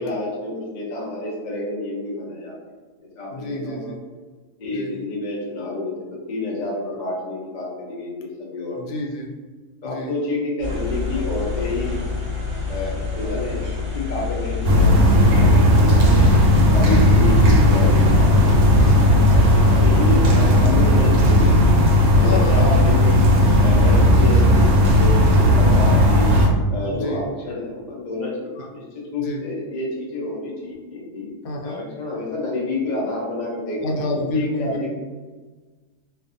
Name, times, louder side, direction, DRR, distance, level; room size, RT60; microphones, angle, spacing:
voice 1, 0.0-2.6 3.2-3.9 4.6-9.0 9.8-12.0 12.7-16.3 16.7-21.5 22.2-23.2 23.6-26.3 26.7-31.3 31.6-34.9, left 2 dB, 60° left, -4 dB, 0.4 m, -29 dB
voice 2, 3.3-4.0 4.7-4.9 8.8-9.3 9.8-10.1 16.7-17.2 18.8-19.0 22.2-22.7 26.8-27.2 28.6-28.7 29.2-29.4 31.4-31.8 33.8-34.9, left 1 dB, 80° left, 0 dB, 1.1 m, -28 dB
sound 1, 10.6-19.7, left 5 dB, 35° right, 0.9 m, -27 dB
sound 2, 14.6-26.5, left 1 dB, 75° right, 1.0 m, -15 dB
2.5 x 2.5 x 2.5 m, 1.3 s
omnidirectional pair, 1.7 m